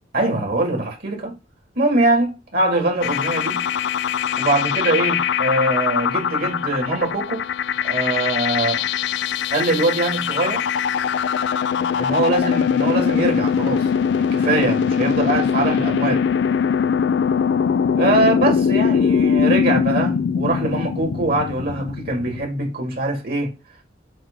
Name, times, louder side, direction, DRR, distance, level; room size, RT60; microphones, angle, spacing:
voice 1, 0.1-1.3 1.8-3.6 4.4-7.5 7.8-8.8 9.5-10.6 11.7-16.2 18.0-23.5, right 2 dB, 55° right, 2.2 m, -22 dB
sound 1, 3.0-22.5, left 7 dB, 65° left, 0.3 m, -21 dB
7.8 x 2.8 x 5.3 m
head